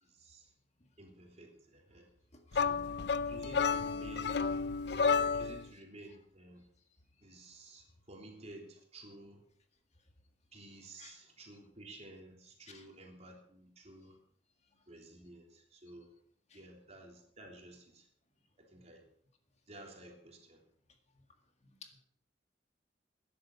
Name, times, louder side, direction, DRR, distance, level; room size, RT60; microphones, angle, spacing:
voice 1, 0.0-0.5 1.0-2.1 2.5-2.9 3.2-4.3 5.3-6.6 7.2-9.4 10.5-14.2 14.9-16.1 16.5-18.1 18.6-19.0 19.7-20.6, right 2 dB, 40° right, 1 dB, 3.4 m, -53 dB
sound 1, 2.5-5.7, left 5 dB, 70° left, 0.6 m, -31 dB
voice 2, 2.5-2.7 4.9-5.0 11.0-11.2 12.7-12.8 21.8-22.0, left 5 dB, 40° left, 4 dB, 1.9 m, -54 dB
14.0 x 10.5 x 5.6 m, 0.67 s
head